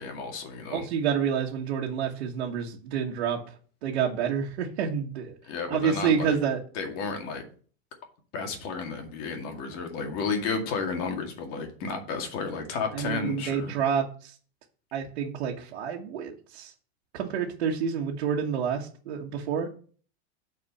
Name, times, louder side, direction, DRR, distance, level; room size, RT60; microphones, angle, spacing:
voice 1, 0.0-0.9 5.4-6.4 6.7-7.4 8.3-13.7, left 4 dB, 45° left, 4 dB, 2.1 m, -32 dB
voice 2, 0.7-3.4 3.8-5.4 5.7-6.6 12.9-14.3 14.9-16.7 17.1-19.7, right 7 dB, 80° right, -2 dB, 1.6 m, -28 dB
8.3 x 4.7 x 5.5 m, 0.43 s
supercardioid pair, 155°, 32 cm